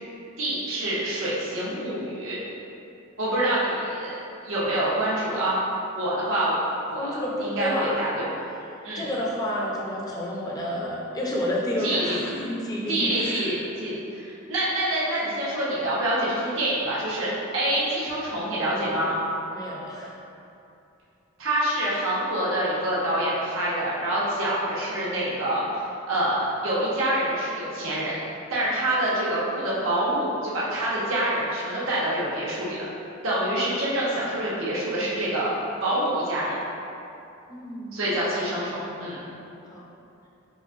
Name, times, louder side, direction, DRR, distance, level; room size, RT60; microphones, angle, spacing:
voice 1, 0.4-2.4 3.2-4.2 4.4-5.6 5.9-6.5 6.9-7.1 7.4-8.2 8.8-9.1 11.8-12.2 12.9-19.2 21.4-28.2 28.5-32.8 33.2-35.6 35.8-36.6 37.9-39.2, right 1 dB, 80° right, -7 dB, 0.9 m, -26 dB
voice 2, 7.0-8.0 8.9-13.5 19.5-20.2 37.5-38.0 39.7-39.8, left 1 dB, 20° left, -4 dB, 0.5 m, -30 dB
5.0 x 2.5 x 2.5 m, 2.7 s
head